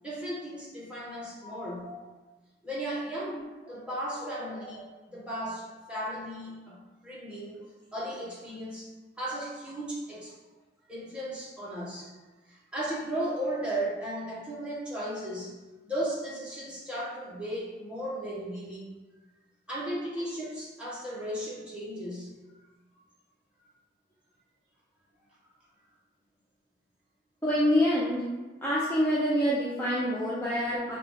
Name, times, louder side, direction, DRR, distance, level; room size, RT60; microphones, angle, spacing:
voice 1, 0.0-2.0 2.6-7.6 7.9-10.4 10.9-12.1 12.5-15.5 15.8-18.9 19.7-22.4, right 1 dB, 5° right, -7 dB, 1.0 m, -36 dB
voice 2, 27.4-28.2 28.6-30.9, equal, 10° left, -8 dB, 0.5 m, -26 dB
5.3 x 2.4 x 3.9 m, 1.2 s
head